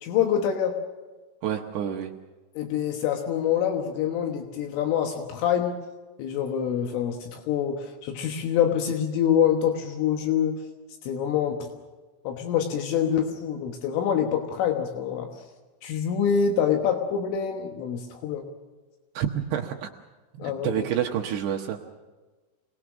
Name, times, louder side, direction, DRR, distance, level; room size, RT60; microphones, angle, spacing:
voice 1, 0.0-0.8 2.6-5.8 6.2-10.6 11.0-11.7 12.3-15.3 15.8-18.5 20.4-20.8, left 8 dB, 80° left, 4 dB, 3.8 m, -26 dB
voice 2, 1.4-2.1 19.1-19.9 20.3-21.8, right 9 dB, 75° right, 3 dB, 2.7 m, -28 dB
27.0 x 20.0 x 6.1 m, 1.3 s
omnidirectional pair, 5.8 m